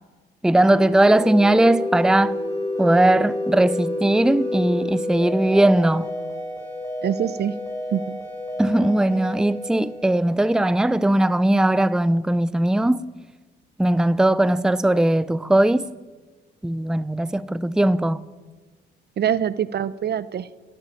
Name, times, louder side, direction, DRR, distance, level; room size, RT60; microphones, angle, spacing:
voice 1, 0.4-2.4 2.8-6.1 8.6-13.1 13.8-15.9 16.6-18.2, right 1 dB, 5° right, 0.6 m, -19 dB
sound 1, 0.6-10.9, left 1 dB, 15° left, 7.9 m, -29 dB
voice 2, 7.0-7.5 7.9-8.2 19.2-20.5, right 9 dB, 55° right, 0.9 m, -24 dB
27.0 x 11.0 x 9.1 m
cardioid pair, 90°, 20 cm